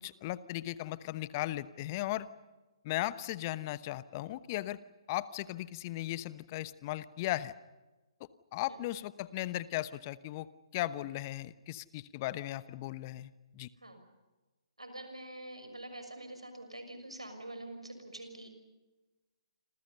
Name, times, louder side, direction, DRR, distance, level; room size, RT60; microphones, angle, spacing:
voice 1, 0.0-2.3 2.8-4.8 5.1-7.5 8.5-10.5 10.7-13.7, left 16 dB, 35° left, 16 dB, 1.0 m, -37 dB
voice 2, 14.8-18.5, right 1 dB, 85° right, 7 dB, 6.1 m, -46 dB
28.0 x 27.0 x 5.6 m, 1.2 s
figure-of-eight pair, 130°, 3 cm